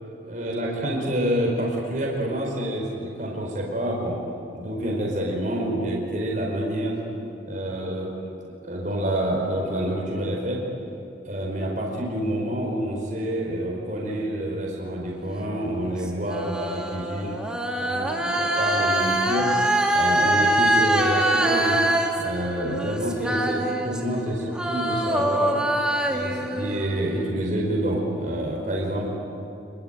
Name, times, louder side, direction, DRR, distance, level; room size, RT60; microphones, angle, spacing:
voice 1, 0.2-4.2 4.5-7.0 7.5-8.1 8.4-10.6 11.2-17.4 17.8-19.5 19.9-21.8 22.2-25.6 26.0-29.2, right 1 dB, 45° right, -2 dB, 4.9 m, -27 dB
sound 1, 15.6-24.3 24.6-27.2, right 1 dB, 5° right, 2.3 m, -24 dB
28.5 x 22.0 x 9.1 m, 2.8 s
head